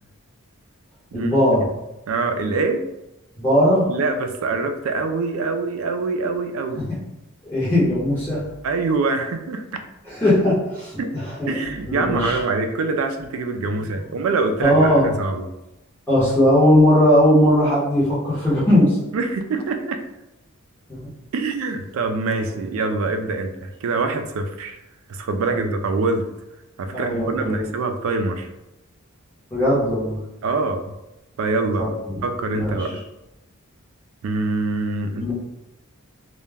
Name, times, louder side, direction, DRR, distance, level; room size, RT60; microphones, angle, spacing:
voice 1, 1.1-1.7 3.4-3.9 7.4-8.5 10.0-11.6 11.9-12.4 14.6-15.3 16.1-19.0 20.9-21.1 22.4-22.5 25.5-25.8 26.9-27.7 29.5-30.2 31.8-32.2 32.5-32.9 35.2-35.3, equal, 10° left, -10 dB, 0.8 m, -19 dB
voice 2, 2.1-2.9 3.9-6.9 8.6-9.7 11.0-11.2 11.5-15.5 19.1-20.0 21.3-24.8 25.1-26.3 26.8-28.5 30.4-30.9 31.4-31.9 32.2-33.0 34.2-35.3, right 3 dB, 65° right, 7 dB, 0.3 m, -24 dB
2.2 x 2.1 x 3.3 m, 0.95 s
head